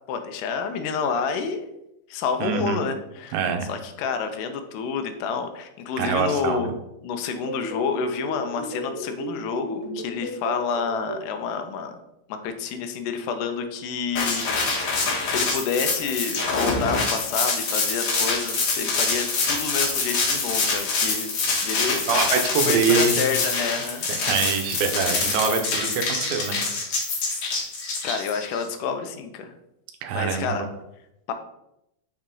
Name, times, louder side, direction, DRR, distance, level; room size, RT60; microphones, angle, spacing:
voice 1, 0.1-1.7 2.1-3.4 3.7-6.7 7.0-12.0 12.3-14.6 15.3-21.3 21.6-24.4 28.0-29.5 30.1-30.7 31.3-31.4, left 6 dB, 80° left, 6 dB, 2.1 m, -29 dB
voice 2, 2.4-2.8 3.3-3.7 6.0-6.7 22.1-23.2 24.3-26.6 30.0-30.6, right 6 dB, 85° right, 6 dB, 2.5 m, -24 dB
sound 1, 7.3-11.2, right 1 dB, 50° right, 2.7 m, -33 dB
sound 2, 14.2-28.6, left 3 dB, 55° left, 1.8 m, -25 dB
6.0 x 4.2 x 3.7 m, 0.83 s
omnidirectional pair, 4.0 m